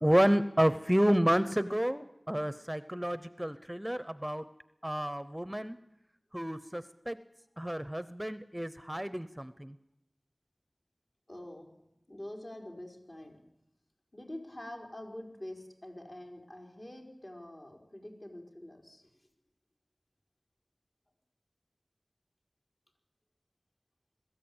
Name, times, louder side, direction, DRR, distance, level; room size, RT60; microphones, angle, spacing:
voice 1, 0.0-4.4 4.8-5.8 6.3-7.2 7.6-9.7, equal, 10° right, 13 dB, 0.7 m, -30 dB
voice 2, 11.3-11.7 12.1-13.4 14.1-19.1, left 1 dB, 50° left, 1 dB, 4.8 m, -46 dB
22.0 x 14.0 x 8.8 m, 0.85 s
wide cardioid pair, 55°, 0 cm